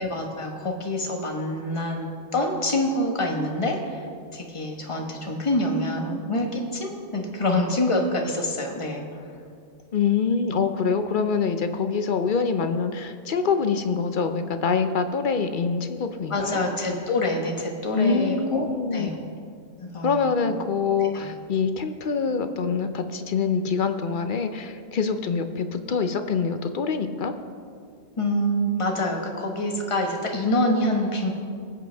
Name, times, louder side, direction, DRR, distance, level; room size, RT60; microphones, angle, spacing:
voice 1, 0.0-2.1 2.3-4.0 4.3-9.2 16.3-19.1 19.8-20.2 21.1-21.3 28.2-31.3, left 1 dB, 25° left, 1 dB, 1.2 m, -26 dB
voice 2, 9.9-16.6 17.9-19.1 20.0-27.3, left 5 dB, 55° left, 8 dB, 0.6 m, -25 dB
19.5 x 7.9 x 3.4 m, 2.3 s
omnidirectional pair, 1.3 m